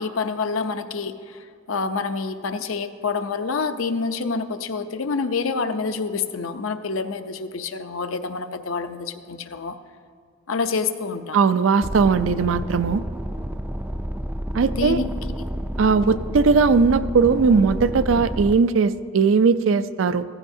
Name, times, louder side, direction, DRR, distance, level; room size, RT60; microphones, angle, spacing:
voice 1, 0.0-9.8 10.5-11.4 14.8-15.1 15.4-15.5, left 4 dB, 85° left, 9 dB, 0.6 m, -27 dB
voice 2, 11.3-13.0 14.5-15.0 15.8-20.3, right 5 dB, 75° right, 13 dB, 0.4 m, -18 dB
sound 1, 11.8-18.5, equal, 5° right, 0.3 m, -30 dB
15.0 x 14.5 x 2.7 m, 2.2 s
head